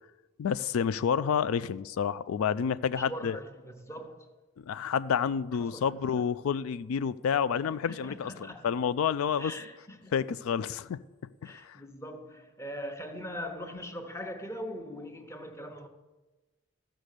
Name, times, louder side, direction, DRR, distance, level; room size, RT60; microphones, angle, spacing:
voice 1, 0.4-3.4 4.6-8.3 8.6-9.5 10.1-11.0 11.4-11.8, left 7 dB, 85° left, 0.3 m, -29 dB
voice 2, 2.9-4.4 5.6-6.3 7.7-8.7 9.4-10.2 11.4-15.9, equal, 15° left, 0.9 m, -41 dB
14.5 x 6.3 x 6.6 m
head